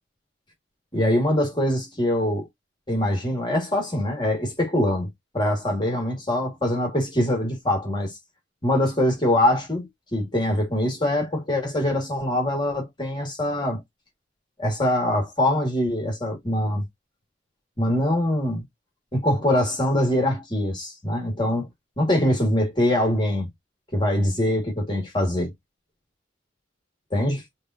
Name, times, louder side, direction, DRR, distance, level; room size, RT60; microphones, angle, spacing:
voice 1, 0.9-2.4 2.9-5.1 5.3-8.1 8.6-13.8 14.6-16.8 17.8-18.6 19.1-21.7 22.0-23.5 23.9-25.5 27.1-27.4, left 1 dB, 25° left, 1.9 m, -23 dB
5.2 x 2.6 x 2.7 m
head